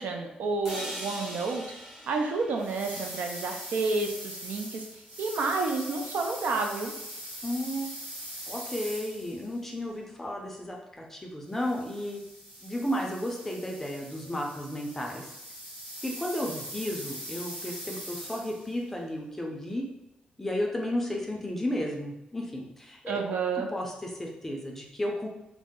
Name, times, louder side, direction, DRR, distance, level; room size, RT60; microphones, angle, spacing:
voice 1, 0.0-1.6 2.1-4.8 5.2-6.9 23.1-23.7, right 3 dB, 75° right, 4 dB, 0.4 m, -30 dB
sound 1, 0.6-4.7, equal, 15° right, 0.8 m, -42 dB
sound 2, 2.6-9.6 11.5-18.7, equal, 55° right, 1.2 m, -42 dB
voice 2, 7.4-7.9 8.5-12.2 12.6-15.3 16.0-19.8 20.4-23.2 23.7-25.3, left 1 dB, 10° left, -1 dB, 0.4 m, -33 dB
2.6 x 2.0 x 3.6 m, 0.89 s
wide cardioid pair, 175°, 3 cm